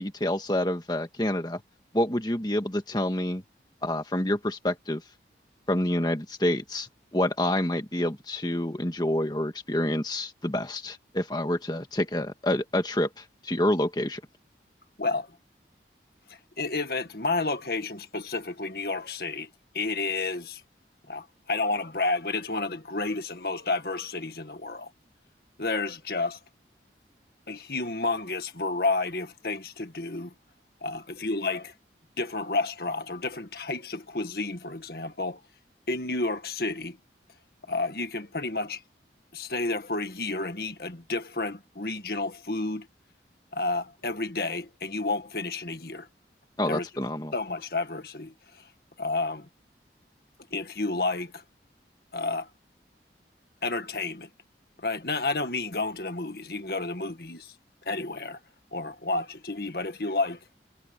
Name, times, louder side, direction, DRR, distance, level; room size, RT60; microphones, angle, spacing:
voice 1, 0.0-1.6 1.9-3.4 3.8-5.0 5.7-6.9 7.1-14.2 46.6-47.3, left 1 dB, 25° left, 1.8 m, -27 dB
voice 2, 16.6-19.5 19.7-20.6 21.1-24.9 25.6-26.4 27.5-30.3 30.8-31.7 32.2-35.4 35.9-37.0 37.7-38.8 39.3-42.9 43.5-46.1 46.6-46.9 47.3-48.6 49.0-49.5 50.5-51.4 52.1-52.5 53.6-54.3 54.8-57.5 57.8-58.4 58.7-60.4, left 3 dB, 60° left, 1.8 m, -30 dB
head